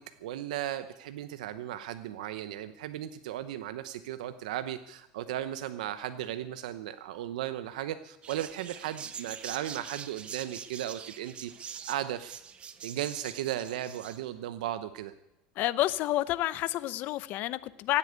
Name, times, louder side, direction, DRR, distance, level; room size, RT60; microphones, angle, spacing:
voice 1, 0.2-12.4 12.8-15.1, right 12 dB, 85° right, 11 dB, 0.8 m, -36 dB
sound 1, 8.2-14.2, right 7 dB, 25° right, 1.1 m, -44 dB
voice 2, 15.6-18.0, left 15 dB, 50° left, 17 dB, 0.8 m, -29 dB
16.0 x 8.4 x 9.5 m, 0.87 s
supercardioid pair, 130°, 4 cm